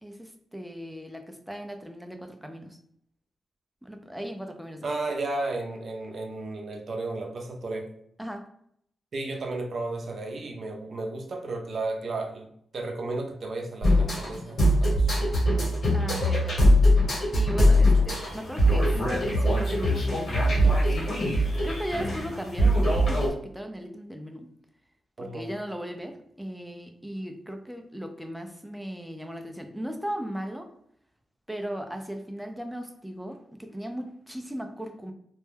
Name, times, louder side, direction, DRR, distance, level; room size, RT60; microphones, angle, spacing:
voice 1, 0.0-2.8 3.8-4.9 8.2-8.5 15.9-16.7 17.3-21.0 21.3-24.5 25.2-30.7 31.5-35.1, equal, 5° right, 4 dB, 0.4 m, -37 dB
voice 2, 4.8-7.9 9.1-15.3 17.7-17.9 25.2-25.5, right 2 dB, 55° right, 2 dB, 0.5 m, -34 dB
sound 1, 13.8-23.3, equal, 50° left, 1.1 m, -22 dB
2.2 x 2.1 x 3.2 m, 0.68 s
cardioid pair, 110°, 0 cm